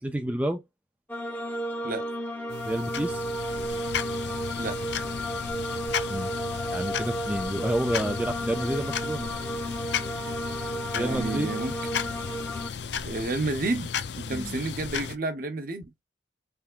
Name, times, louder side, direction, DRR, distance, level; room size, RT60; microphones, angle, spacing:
voice 1, 0.0-0.6 2.6-3.2 6.1-6.3 6.7-9.3 10.9-11.5 14.3-14.5, right 1 dB, 10° right, 0.4 m, -29 dB
sound 1, 1.1-12.7, equal, 10° left, 0.8 m, -33 dB
sound 2, 2.5-15.2, left 6 dB, 65° left, 0.5 m, -34 dB
voice 2, 10.9-11.7 13.0-15.8, right 2 dB, 50° right, 0.9 m, -30 dB
3.6 x 3.4 x 2.5 m
head